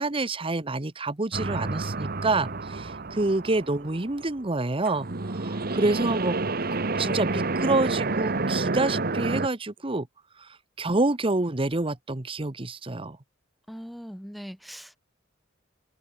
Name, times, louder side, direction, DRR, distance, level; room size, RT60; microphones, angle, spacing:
voice 1, 0.0-6.4 7.0-10.1 10.4-10.5 10.8-13.2, right 2 dB, 30° right, 1.1 m, -27 dB
sound 1, 1.3-4.6 4.8-9.5, right 3 dB, 50° right, 1.3 m, -29 dB
voice 2, 13.7-15.0, equal, ahead, 5.6 m, -40 dB
head